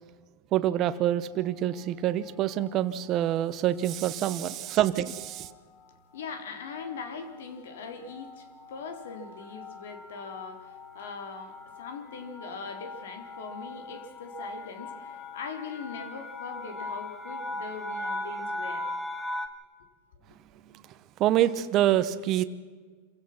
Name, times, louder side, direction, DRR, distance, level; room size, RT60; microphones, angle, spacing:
voice 1, 0.5-5.5 21.2-22.4, right 12 dB, 30° right, 12 dB, 1.0 m, -26 dB
sound 1, 1.3-1.8 2.6-2.9 3.2-3.4 3.7-19.5, left 2 dB, 15° left, 1.5 m, -40 dB
voice 2, 6.1-18.9, left 5 dB, 80° left, 7 dB, 3.7 m, -41 dB
26.5 x 16.5 x 6.0 m, 1.5 s
supercardioid pair, 155°, 0 cm